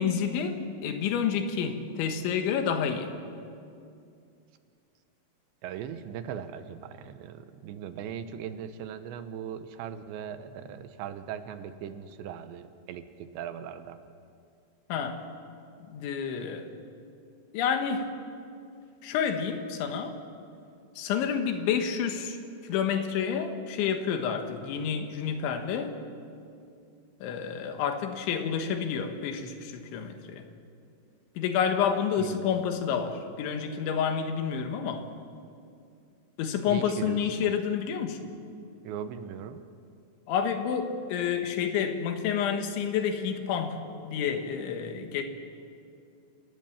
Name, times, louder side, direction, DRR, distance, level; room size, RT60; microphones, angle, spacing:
voice 1, 0.0-3.1 14.9-15.2 15.9-16.7 17.5-18.1 19.0-20.2 21.0-22.4 22.6-25.9 27.2-30.4 31.4-35.1 36.4-38.2 40.3-43.8 44.0-45.2, left 7 dB, 90° left, 6 dB, 3.9 m, -29 dB
voice 2, 5.6-14.0 32.2-32.4 36.6-37.5 38.8-39.6, right 8 dB, 80° right, 10 dB, 3.2 m, -39 dB
29.0 x 18.0 x 7.3 m, 2.4 s
omnidirectional pair, 5.2 m